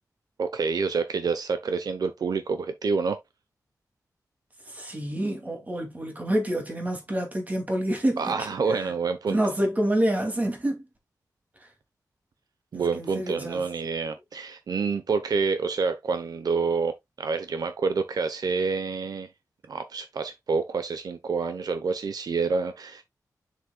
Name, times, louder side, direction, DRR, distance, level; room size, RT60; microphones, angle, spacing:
voice 1, 0.4-3.2 8.2-9.4 12.7-19.3 19.7-23.0, right 5 dB, 75° right, 0.9 m, -28 dB
voice 2, 4.7-8.3 8.7-8.9 9.3-10.9 12.9-13.6, right 1 dB, 25° right, 2.6 m, -27 dB
7.5 x 6.7 x 2.3 m
wide cardioid pair, 150°, 7 cm